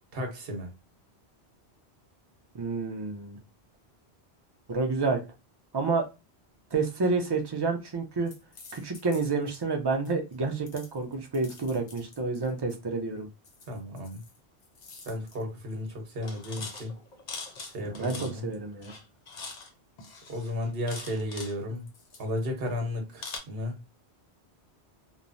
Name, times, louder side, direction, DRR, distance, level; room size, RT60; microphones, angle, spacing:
voice 1, 0.1-0.7 13.7-14.2 15.1-16.9 17.7-18.5 20.3-21.9 22.2-23.8, left 1 dB, 65° right, 1.0 m, -34 dB
voice 2, 2.5-3.4 4.7-5.2 5.7-6.0 6.7-8.3 8.7-13.3 17.8-18.9, right 4 dB, 40° right, 0.3 m, -29 dB
sound 1, 8.3-9.6 10.1-10.3 10.7-12.8 13.4-14.4 14.6-15.4 15.7-15.9 16.2-18.6 18.8-19.7 20.0-21.6 21.9-22.6 23.2-23.4, left 4 dB, 50° left, 0.7 m, -44 dB
3.0 x 2.1 x 2.5 m
omnidirectional pair, 1.1 m